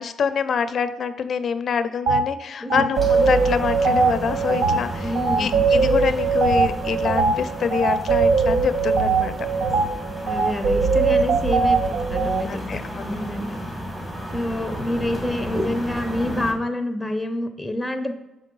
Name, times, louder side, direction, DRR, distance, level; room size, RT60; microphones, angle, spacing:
voice 1, 0.0-5.1 5.4-9.4 11.1-11.2 12.5-13.2, left 6 dB, 55° left, 11 dB, 0.4 m, -25 dB
sound 1, 2.1-2.2 2.7-12.4, right 4 dB, 80° right, 0.5 m, -21 dB
sound 2, 2.9-16.5, equal, 20° right, 1.7 m, -33 dB
voice 2, 5.0-5.7 10.2-12.8 13.1-13.6 14.3-18.1, left 1 dB, 5° left, 6 dB, 0.7 m, -27 dB
5.9 x 4.7 x 3.8 m, 0.94 s
cardioid pair, 90°, 0 cm